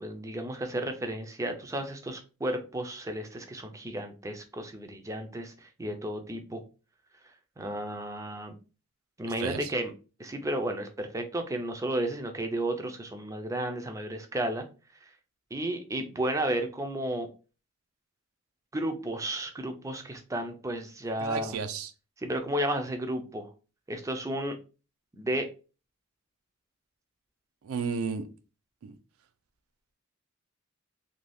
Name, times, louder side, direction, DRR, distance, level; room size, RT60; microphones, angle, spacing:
voice 1, 0.0-6.6 7.6-8.5 9.2-9.9 10.2-14.7 15.5-17.3 18.7-21.6 22.2-23.5 23.9-24.6 25.2-25.5, right 1 dB, 15° right, 0.4 m, -33 dB
voice 2, 21.2-21.9 27.6-28.3 28.8-28.9, right 5 dB, 90° right, 0.4 m, -33 dB
2.6 x 2.3 x 3.2 m
head